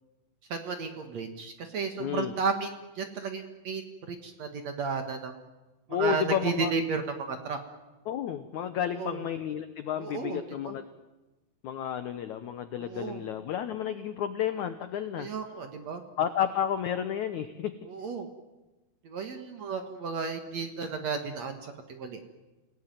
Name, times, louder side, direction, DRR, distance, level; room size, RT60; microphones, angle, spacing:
voice 1, 0.5-2.7 3.0-5.3 5.9-7.6 9.0-9.2 10.0-10.8 12.8-13.2 15.2-16.0 17.9-18.3 19.0-22.2, right 5 dB, 55° right, 6 dB, 2.2 m, -33 dB
voice 2, 2.0-2.3 5.9-6.7 8.1-10.8 11.6-15.3 16.2-17.8, left 9 dB, 85° left, 10 dB, 1.7 m, -31 dB
28.0 x 17.5 x 9.2 m, 1.1 s
omnidirectional pair, 4.8 m